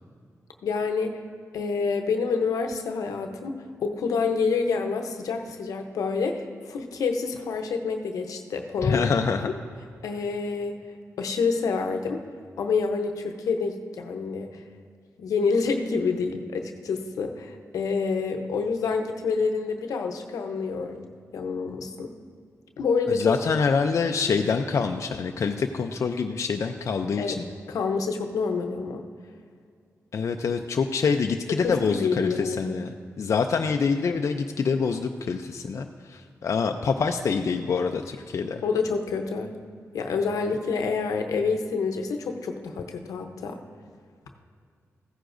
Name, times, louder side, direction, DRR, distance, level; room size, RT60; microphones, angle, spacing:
voice 1, 0.6-1.2 1.5-9.1 9.4-9.5 10.0-10.8 11.2-12.2 12.6-14.6 15.2-21.1 21.3-22.1 22.8-23.6 27.2-27.4 27.7-29.1 31.5-32.8 38.6-39.5 39.9-43.6, left 4 dB, 90° left, 5 dB, 0.7 m, -27 dB
voice 2, 8.8-9.5 23.1-27.5 30.1-32.9 33.2-38.6, left 5 dB, 60° left, 5 dB, 0.4 m, -26 dB
15.5 x 9.3 x 2.6 m, 2.2 s
cardioid pair, 60°, 6 cm